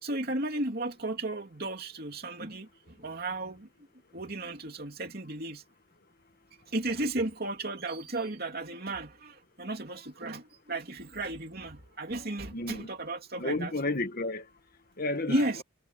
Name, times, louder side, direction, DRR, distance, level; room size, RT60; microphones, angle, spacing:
voice 1, 0.0-3.7 4.1-5.6 6.7-13.7 15.3-15.6, right 2 dB, 50° right, 3.1 m, -34 dB
voice 2, 12.5-12.9 13.4-14.4 15.0-15.6, left 2 dB, 45° left, 1.7 m, -32 dB
head